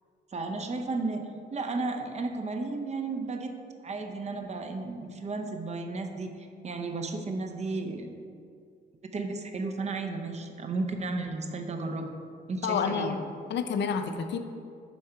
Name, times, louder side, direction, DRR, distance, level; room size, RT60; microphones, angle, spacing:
voice 1, 0.3-3.5 3.8-8.2 9.1-12.1 12.5-13.3, right 3 dB, 35° right, 5 dB, 0.6 m, -33 dB
voice 2, 12.6-13.2 13.5-14.4, left 6 dB, 65° left, 8 dB, 0.5 m, -29 dB
5.4 x 4.9 x 4.5 m, 2.3 s
cardioid pair, 90°, 20 cm